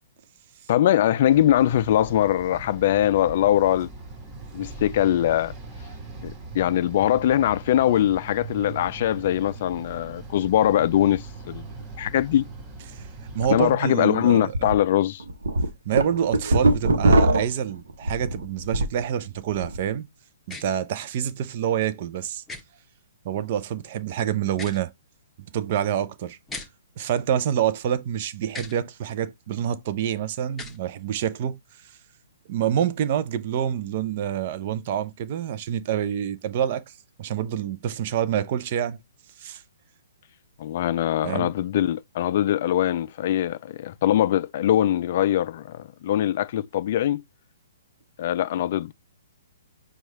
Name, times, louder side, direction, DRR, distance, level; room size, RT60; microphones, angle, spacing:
voice 1, 0.7-3.9 4.5-5.5 6.2-11.7 12.0-12.4 13.5-15.2 40.6-47.2 48.2-48.9, left 12 dB, 50° left, 0.3 m, -22 dB
sound 1, 1.3-13.8, right 3 dB, 25° right, 1.8 m, -40 dB
voice 2, 13.3-14.7 15.9-20.1 20.5-22.4 23.2-24.9 25.5-26.4 27.0-31.6 32.5-36.8 37.2-39.0 39.4-39.6 41.2-41.5, right 9 dB, 45° right, 0.5 m, -27 dB
sound 2, 13.3-13.4 13.9-14.0 14.5-14.7 15.2-19.0 19.4-19.8, right 1 dB, 75° right, 0.9 m, -21 dB
sound 3, 20.5-20.6 22.5-22.6 24.5-24.8 26.5-26.7 28.5-28.7 30.5-30.8, left 3 dB, 5° left, 1.0 m, -37 dB
4.7 x 2.3 x 4.1 m
hypercardioid pair, 130°, 0 cm